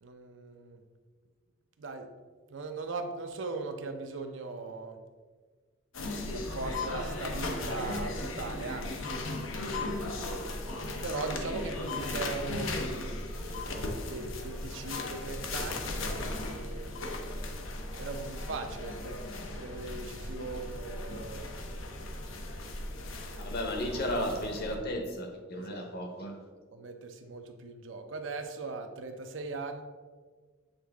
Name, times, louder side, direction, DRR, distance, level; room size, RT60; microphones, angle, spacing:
voice 1, 0.0-0.8 1.8-2.1 2.5-5.0 6.3-9.2 9.7-10.2 11.0-12.8 14.0-17.0 17.9-21.6 25.5-25.9 26.7-29.8, right 3 dB, 70° right, 0.6 m, -39 dB
sound 1, 5.9-24.8, left 2 dB, 90° left, 0.8 m, -36 dB
voice 2, 23.4-26.4, equal, 55° left, 0.9 m, -34 dB
8.1 x 3.6 x 3.5 m
head